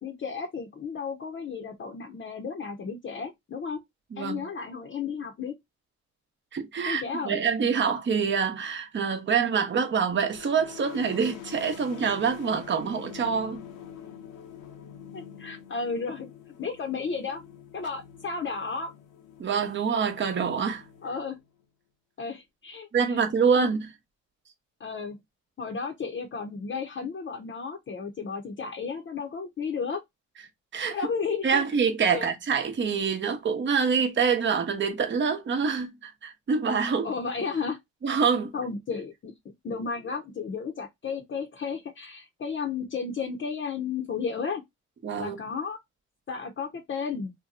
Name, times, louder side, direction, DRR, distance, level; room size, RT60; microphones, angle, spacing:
voice 1, 0.0-3.8 4.2-5.5 6.9-7.3 15.1-16.3 16.6-17.4 17.7-18.9 21.0-21.4 22.2-22.9 23.6-23.7 24.8-25.2 25.6-30.0 30.9-31.6 32.1-32.2 37.0-37.8 38.5-44.6 45.2-45.8 46.3-47.3, left 5 dB, 40° left, 0.7 m, -33 dB
voice 2, 4.1-4.5 6.5-13.6 19.4-20.9 22.9-23.9 30.7-31.0 31.4-37.1 38.0-38.5 45.0-45.4, right 6 dB, 40° right, 0.9 m, -26 dB
sound 1, 10.1-21.6, left 9 dB, 90° left, 0.8 m, -46 dB
2.8 x 2.2 x 3.7 m
cardioid pair, 90°, 30 cm